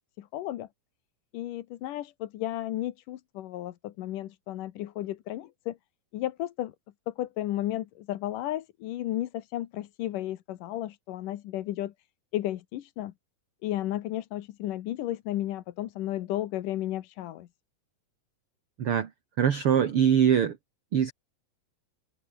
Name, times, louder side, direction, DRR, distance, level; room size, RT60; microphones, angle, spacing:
voice 1, 0.2-0.7 1.3-5.8 6.1-6.7 7.1-11.9 12.3-13.1 13.6-17.5, left 14 dB, 70° left, 2.6 m, -33 dB
voice 2, 18.8-19.1 19.4-20.6 20.9-21.1, right 8 dB, 50° right, 2.1 m, -22 dB
omnidirectional pair, 4.0 m